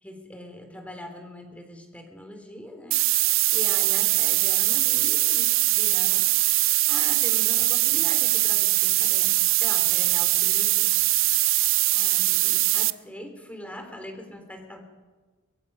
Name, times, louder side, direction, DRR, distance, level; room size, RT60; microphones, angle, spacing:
voice 1, 0.0-3.0 3.5-11.0 11.9-14.8, left 1 dB, 5° left, 5 dB, 3.0 m, -41 dB
sound 1, 2.9-12.9, right 18 dB, 65° right, 0.6 m, -22 dB
23.5 x 22.5 x 5.4 m, 1.4 s
head